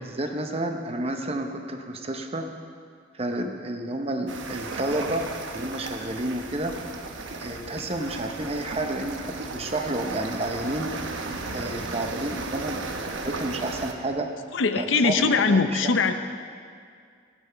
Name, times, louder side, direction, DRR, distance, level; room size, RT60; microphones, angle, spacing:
voice 1, 0.1-2.5 3.1-6.8 7.4-11.0 11.5-12.8 13.2-14.3 14.8-15.9, right 1 dB, 30° right, 4 dB, 0.8 m, -30 dB
sound 1, 4.3-13.9, right 3 dB, 80° right, 0.9 m, -35 dB
voice 2, 14.5-16.1, left 4 dB, 80° left, 8 dB, 0.6 m, -21 dB
15.0 x 10.0 x 4.5 m, 2.2 s
head